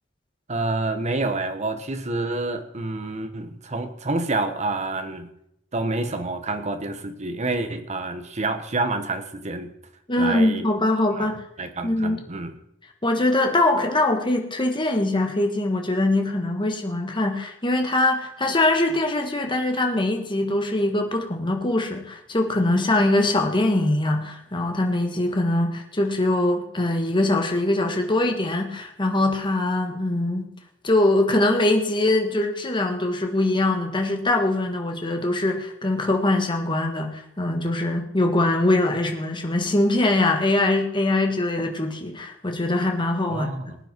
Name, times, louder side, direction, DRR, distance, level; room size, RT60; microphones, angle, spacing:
voice 1, 0.5-5.3 5.7-9.7 10.2-10.7 11.1-11.3 11.6-12.6 43.3-43.8, right 2 dB, 35° right, 8 dB, 1.2 m, -28 dB
voice 2, 10.1-11.4 11.8-12.2 13.0-30.5 30.8-43.5, left 2 dB, 25° left, 3 dB, 1.5 m, -22 dB
19.5 x 9.1 x 4.5 m, 0.77 s
head